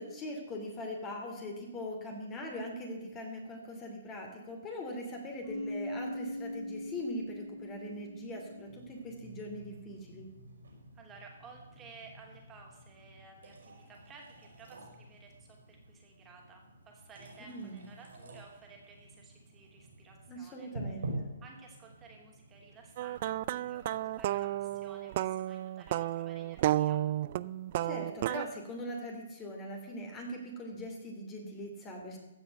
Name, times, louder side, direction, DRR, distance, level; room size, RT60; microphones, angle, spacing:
voice 1, 0.0-10.3 17.5-17.8 20.3-21.3 27.8-32.2, left 1 dB, 20° left, 1 dB, 2.8 m, -41 dB
Bass guitar, 5.4-9.3, left 1 dB, 50° left, 5.1 m, -41 dB
sound 1, 8.6-24.9, right 2 dB, 75° right, 5.3 m, -48 dB
voice 2, 10.9-20.7 21.4-27.0, right 4 dB, 20° right, 0 dB, 3.0 m, -55 dB
sound 2, 23.0-28.5, right 13 dB, 45° right, 0.4 m, -32 dB
15.5 x 6.2 x 7.9 m, 1.1 s
hypercardioid pair, 140°, 0 cm